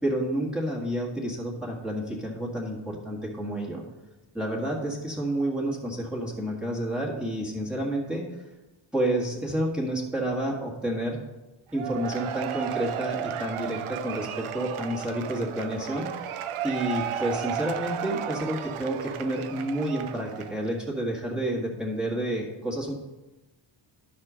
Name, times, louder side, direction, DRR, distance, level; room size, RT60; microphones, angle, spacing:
voice 1, 0.0-3.8 4.3-8.3 8.9-11.2 11.7-22.9, right 1 dB, ahead, -4 dB, 1.7 m, -30 dB
Cheering / Applause / Crowd, 11.7-20.7, right 9 dB, 85° right, 0.7 m, -34 dB
11.0 x 4.4 x 6.2 m, 1.1 s
wide cardioid pair, 150°, 49 cm